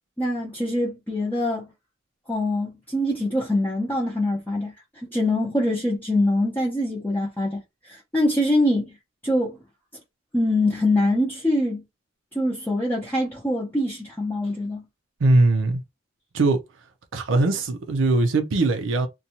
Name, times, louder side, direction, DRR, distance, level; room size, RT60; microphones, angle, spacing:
voice 1, 0.2-1.7 2.3-4.7 5.1-9.0 9.2-9.6 10.3-11.8 12.3-14.8, left 1 dB, 10° left, 0.6 m, -24 dB
voice 2, 15.2-15.8 16.3-16.6 17.1-19.1, right 2 dB, 80° right, 0.5 m, -20 dB
2.6 x 2.2 x 2.8 m
head